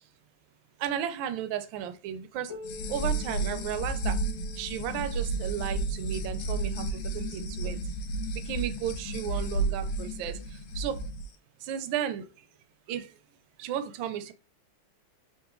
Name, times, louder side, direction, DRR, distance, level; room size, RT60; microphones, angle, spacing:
voice 1, 0.8-2.5 2.9-4.2 4.6-7.8 8.4-10.4 10.8-11.0 11.6-12.3 12.9-13.1 13.6-14.3, right 10 dB, 75° right, 10 dB, 1.2 m, -34 dB
Piano, 2.5-7.8 8.7-8.8 9.3-9.4 10.2-10.3 11.3-11.4, left 3 dB, 20° right, 0.7 m, -50 dB
sound 1, 2.6-11.3, right 2 dB, 90° left, 1.5 m, -32 dB
3.9 x 2.5 x 3.7 m, 0.34 s
omnidirectional pair, 2.2 m